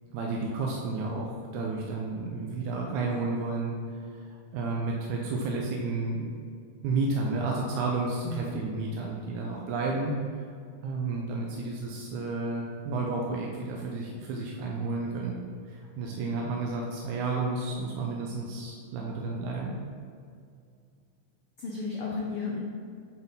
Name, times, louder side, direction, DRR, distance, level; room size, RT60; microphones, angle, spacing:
voice 1, 0.1-3.8 4.5-6.3 6.8-10.1 10.8-15.3 15.7-19.8, right 3 dB, 85° right, -2 dB, 2.1 m, -31 dB
voice 2, 8.2-8.6 8.9-9.0 21.6-22.6, left 4 dB, 90° left, -3 dB, 1.2 m, -34 dB
8.0 x 3.5 x 4.1 m, 2.2 s
omnidirectional pair, 3.4 m